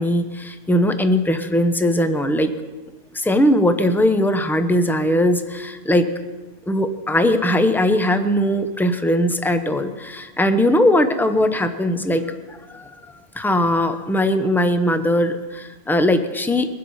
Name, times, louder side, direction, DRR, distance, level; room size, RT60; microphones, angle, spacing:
voice 1, 0.0-2.5 3.1-6.1 6.7-13.0 13.3-16.7, left 1 dB, ahead, 8 dB, 0.6 m, -19 dB
22.0 x 7.7 x 5.5 m, 1.3 s
omnidirectional pair, 1.2 m